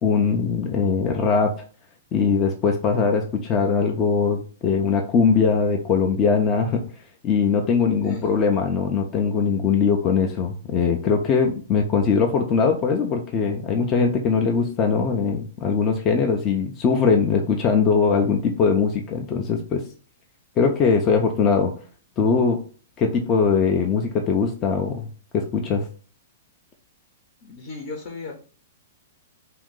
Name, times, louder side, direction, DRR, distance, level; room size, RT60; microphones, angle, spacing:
voice 1, 0.0-1.5 2.1-6.8 7.2-19.8 20.6-21.7 22.2-22.6 23.0-25.1 25.3-25.9, left 5 dB, 30° left, 3 dB, 0.5 m, -21 dB
voice 2, 27.4-28.3, left 3 dB, 50° left, 1 dB, 0.9 m, -35 dB
2.8 x 2.5 x 3.7 m, 0.41 s
hypercardioid pair, 130°, 0 cm